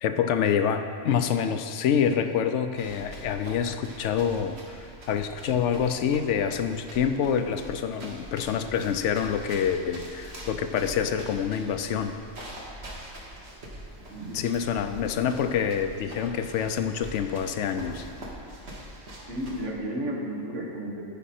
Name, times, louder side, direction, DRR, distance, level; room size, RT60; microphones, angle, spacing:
voice 1, 0.0-12.1 14.3-18.1, left 8 dB, 80° left, 8 dB, 0.9 m, -27 dB
sound 1, 2.7-19.7, right 1 dB, 65° right, 1.7 m, -43 dB
voice 2, 14.1-14.4 19.3-21.0, right 1 dB, 80° right, -3 dB, 1.8 m, -33 dB
13.5 x 5.1 x 4.3 m, 2.2 s
omnidirectional pair, 1.2 m